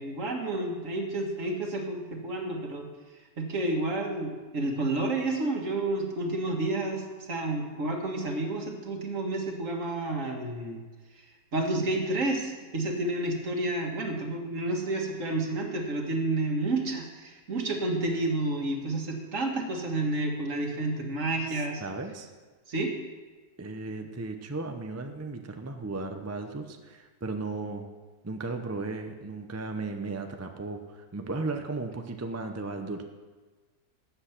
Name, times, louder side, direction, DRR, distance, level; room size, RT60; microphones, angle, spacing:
voice 1, 0.0-2.9 3.4-10.8 11.5-21.8 22.7-22.9, right 2 dB, 55° right, 2 dB, 1.9 m, -30 dB
voice 2, 21.5-22.3 23.6-27.8 28.2-33.0, right 3 dB, 25° right, 6 dB, 0.3 m, -35 dB
13.0 x 8.1 x 5.9 m, 1.4 s
omnidirectional pair, 1.7 m